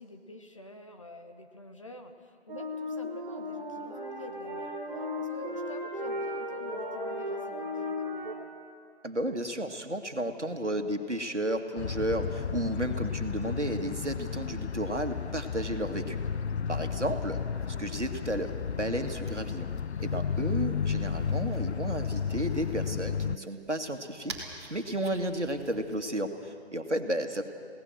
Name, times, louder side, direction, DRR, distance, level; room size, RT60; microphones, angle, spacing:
voice 1, 0.0-8.3 17.1-17.2 27.0-27.4, left 2 dB, 30° left, 5 dB, 1.1 m, -48 dB
sound 1, 2.5-8.3, left 1 dB, 40° right, 3.3 m, -35 dB
voice 2, 9.0-16.2 16.7-17.4 17.7-19.7 20.0-24.4 24.7-27.4, right 1 dB, 90° right, 6 dB, 1.9 m, -33 dB
sound 2, 11.8-23.4, left 6 dB, 70° left, 0.5 m, -33 dB
sound 3, 17.5-26.1, right 2 dB, 25° right, 2.4 m, -49 dB
22.5 x 17.5 x 7.8 m, 2.3 s
figure-of-eight pair, 155°, 34 cm